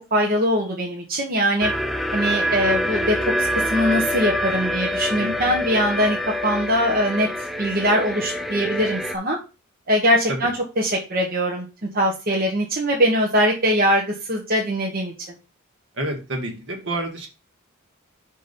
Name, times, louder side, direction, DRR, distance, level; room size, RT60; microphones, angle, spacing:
voice 1, 0.1-1.7 2.1-6.2 6.4-7.3 7.6-9.4 9.9-11.7 11.9-15.4, equal, 45° right, -1 dB, 1.2 m, -22 dB
sound 1, 1.6-9.2, equal, ahead, 0.4 m, -25 dB
voice 2, 5.2-5.6 10.3-10.4 16.0-17.3, right 1 dB, 60° right, 2 dB, 1.8 m, -29 dB
5.3 x 5.2 x 4.2 m, 0.30 s
head